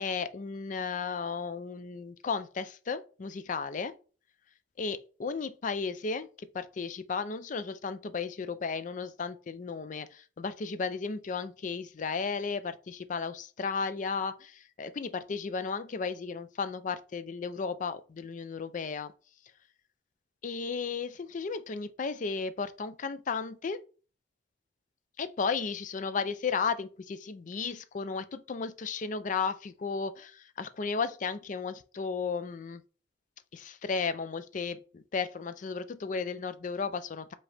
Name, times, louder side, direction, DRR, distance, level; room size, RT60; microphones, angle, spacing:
voice 1, 0.0-3.9 4.8-19.1 20.4-23.8 25.2-32.8 33.5-37.3, left 5 dB, 45° left, 0.4 m, -34 dB
4.9 x 2.8 x 3.3 m
head